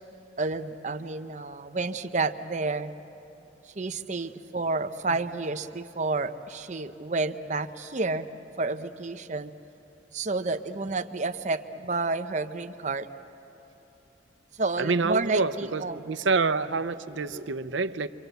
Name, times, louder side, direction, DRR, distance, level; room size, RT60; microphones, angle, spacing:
voice 1, 0.4-2.9 3.8-8.3 8.6-9.5 10.1-13.1 14.6-16.0, right 3 dB, 40° right, 0.8 m, -30 dB
voice 2, 14.8-18.1, right 4 dB, 85° right, 0.7 m, -27 dB
28.0 x 25.5 x 8.1 m
head